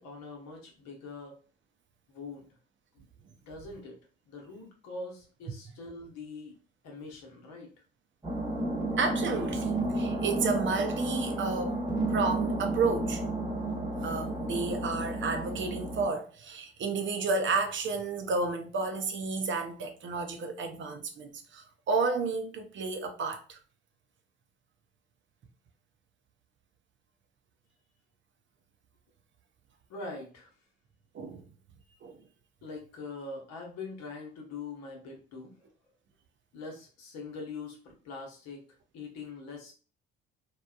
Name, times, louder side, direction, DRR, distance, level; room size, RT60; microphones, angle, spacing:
voice 1, 0.0-1.4 2.1-2.5 2.9-3.1 3.4-4.0 4.3-6.5 6.8-7.7 29.9-30.5 32.6-35.5 36.5-38.6 38.9-39.7, left 3 dB, 65° left, 1.0 m, -43 dB
sound 1, 8.2-16.1, right 2 dB, 15° right, 1.0 m, -32 dB
voice 2, 9.0-11.8 12.1-13.2 13.5-13.6 14.0-23.6 31.1-31.4 32.0-32.2, right 4 dB, 40° right, 0.6 m, -31 dB
2.9 x 2.2 x 2.3 m
hypercardioid pair, 50°, 30 cm